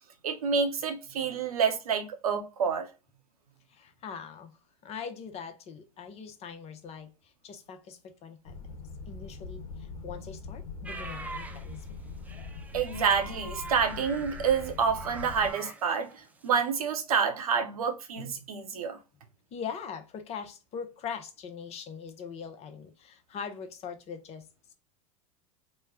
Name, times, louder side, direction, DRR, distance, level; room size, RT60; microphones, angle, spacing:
voice 1, 0.2-2.9 12.7-19.0, right 6 dB, 75° right, 0.7 m, -28 dB
voice 2, 3.7-4.6 4.8-8.6 9.1-12.0 19.5-24.7, left 6 dB, 35° left, 0.6 m, -42 dB
sound 1, 8.5-15.5, left 4 dB, 70° left, 0.7 m, -42 dB
sound 2, 10.9-16.5 16.8-17.0, right 3 dB, 10° right, 0.4 m, -44 dB
3.1 x 2.1 x 3.5 m
figure-of-eight pair, 85°, 19 cm